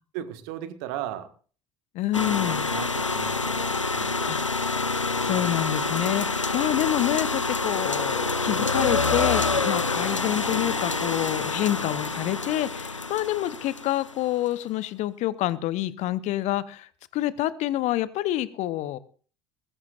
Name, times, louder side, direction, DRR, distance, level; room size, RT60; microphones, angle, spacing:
voice 1, 0.1-1.3 2.1-4.4, right 11 dB, 60° right, 10 dB, 1.6 m, -37 dB
voice 2, 1.9-2.6 4.2-4.6 5.2-19.0, left 14 dB, 50° left, 18 dB, 0.9 m, -27 dB
sound 1, 2.1-14.2, left 3 dB, 90° left, 0.5 m, -27 dB
21.0 x 14.5 x 2.5 m, 0.40 s
figure-of-eight pair, 60°, 15 cm